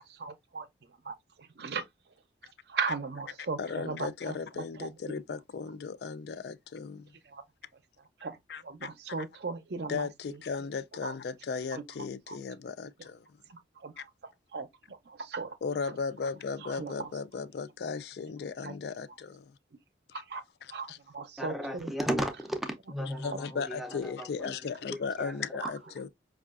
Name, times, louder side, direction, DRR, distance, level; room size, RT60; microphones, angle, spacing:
voice 1, 0.0-2.1 2.6-5.2 7.2-7.4 8.0-10.4 11.0-11.2 11.7-12.4 13.0-13.1 13.5-16.0 16.6-17.1 18.6-18.7 20.1-20.4 20.7-21.9 23.3-23.4 25.6-25.7, right 4 dB, 60° right, 0.5 m, -39 dB
voice 2, 3.6-7.1 8.5-8.9 9.9-13.2 15.6-19.5 20.9-21.0 23.2-26.1, left 5 dB, 60° left, 0.3 m, -36 dB
voice 3, 21.4-24.5 24.9-25.7, equal, ahead, 0.5 m, -35 dB
5.3 x 2.4 x 2.3 m
head